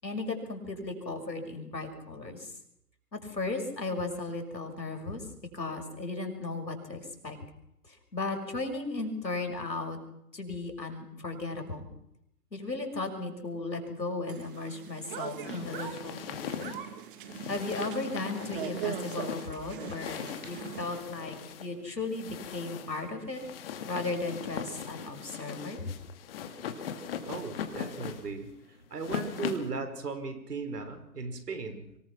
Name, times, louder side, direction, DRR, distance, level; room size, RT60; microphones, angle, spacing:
voice 1, 0.0-2.5 3.1-5.2 5.5-7.4 7.9-10.0 10.3-11.9 12.5-16.7 17.5-23.4 23.9-25.8, left 3 dB, 90° left, 3 dB, 6.1 m, -36 dB
sound 1, 14.3-20.8, right 10 dB, 30° right, 1.9 m, -41 dB
sound 2, 15.4-29.8, left 7 dB, 35° left, 2.3 m, -40 dB
voice 2, 27.3-31.9, right 4 dB, 65° right, 8 dB, 5.0 m, -37 dB
25.0 x 19.0 x 6.0 m, 0.78 s
figure-of-eight pair, 140°, 50 cm